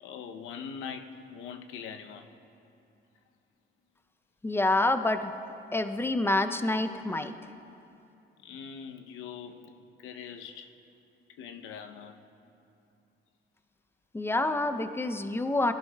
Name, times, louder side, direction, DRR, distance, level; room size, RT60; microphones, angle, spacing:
voice 1, 0.0-2.3 6.5-6.6 8.4-10.8 11.4-12.2 15.3-15.4, left 7 dB, 85° left, 7 dB, 0.7 m, -42 dB
voice 2, 4.4-5.3 5.7-7.4 14.1-15.7, left 2 dB, 10° left, 8 dB, 0.5 m, -27 dB
16.5 x 11.0 x 2.2 m, 2.7 s
cardioid pair, 90°, 20 cm